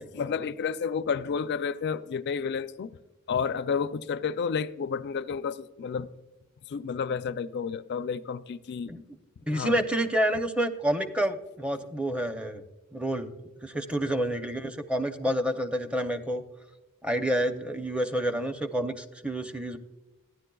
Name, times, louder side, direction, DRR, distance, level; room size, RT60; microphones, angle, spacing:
voice 1, 0.0-2.9 3.3-6.1 6.7-8.9 9.5-9.8, left 6 dB, 55° left, 0.4 m, -31 dB
voice 2, 9.5-12.7 12.9-13.3 13.6-16.4 17.0-19.8, right 1 dB, 5° right, 0.6 m, -28 dB
14.5 x 10.5 x 2.3 m
head